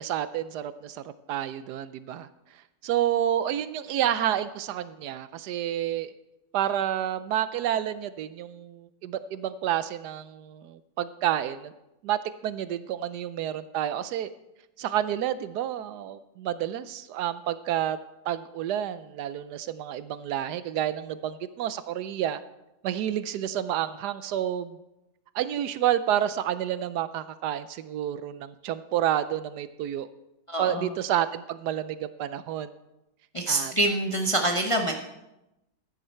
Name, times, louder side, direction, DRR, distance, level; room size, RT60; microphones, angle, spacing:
voice 1, 0.0-2.3 2.8-6.1 6.5-11.7 12.0-14.3 14.8-18.0 18.3-22.4 22.8-24.8 25.3-30.1 30.6-32.7 33.5-33.7, right 11 dB, 75° right, 14 dB, 1.1 m, -29 dB
voice 2, 30.5-30.9 33.3-34.9, right 1 dB, 25° left, 2 dB, 0.7 m, -26 dB
14.5 x 9.4 x 4.4 m, 0.92 s
omnidirectional pair, 1.8 m